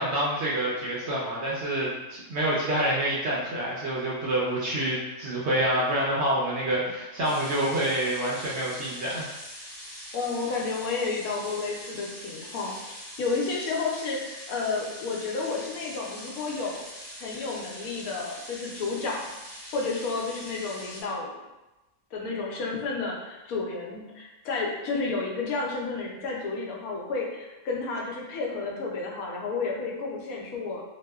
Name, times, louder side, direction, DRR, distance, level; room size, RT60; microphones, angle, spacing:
voice 1, 0.0-9.3, right 1 dB, 65° right, -6 dB, 0.7 m, -27 dB
sound 1, 7.2-21.0, equal, 35° left, 0.4 m, -43 dB
voice 2, 10.1-12.9 13.2-16.8 17.2-19.2 19.7-21.4 22.1-30.8, left 4 dB, 85° left, -2 dB, 1.0 m, -31 dB
2.8 x 2.0 x 2.2 m, 1.0 s
omnidirectional pair, 1.5 m